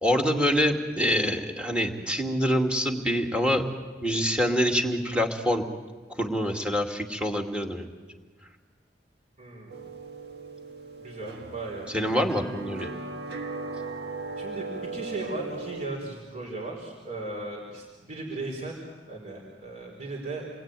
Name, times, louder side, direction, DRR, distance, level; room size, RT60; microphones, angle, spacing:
voice 1, 0.0-3.6 4.0-5.6 6.1-7.9 11.9-12.9, equal, 5° right, 3 dB, 2.4 m, -25 dB
voice 2, 9.4-9.8 11.0-12.5 13.7-13.9 14.4-20.5, right 2 dB, 40° right, -2 dB, 4.9 m, -37 dB
sound 1, 9.7-15.9, right 3 dB, 65° right, 2.1 m, -38 dB
29.0 x 21.0 x 9.1 m, 1.4 s
head